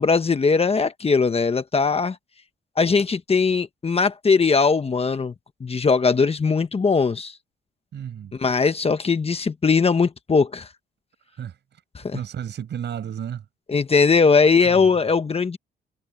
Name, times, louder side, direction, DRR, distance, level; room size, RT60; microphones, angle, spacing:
voice 1, 0.0-2.2 2.8-5.3 5.6-7.3 8.3-10.7 11.9-12.2 13.7-15.6, left 4 dB, 30° left, 1.3 m, -20 dB
voice 2, 7.9-8.3 11.4-11.5 12.1-13.4 14.6-14.9, right 9 dB, 60° right, 5.8 m, -32 dB
cardioid pair, 90°, 20 cm